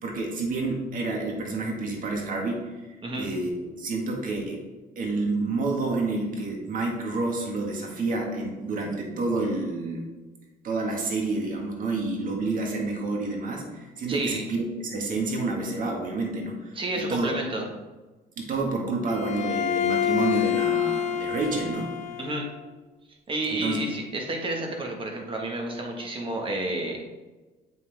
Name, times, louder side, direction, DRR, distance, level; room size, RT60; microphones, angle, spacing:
voice 1, 0.0-2.7 3.1-4.6 4.9-10.1 10.6-17.3 18.4-21.9 23.5-23.8, right 3 dB, 55° right, 0 dB, 1.8 m, -29 dB
voice 2, 14.1-14.4 16.7-17.7 22.2-22.5 23.3-27.0, right 1 dB, 30° right, 1 dB, 1.6 m, -30 dB
Bowed string instrument, 19.1-22.5, left 10 dB, 45° left, 0.7 m, -27 dB
7.3 x 5.8 x 3.5 m, 1.2 s
cardioid pair, 110°, 17 cm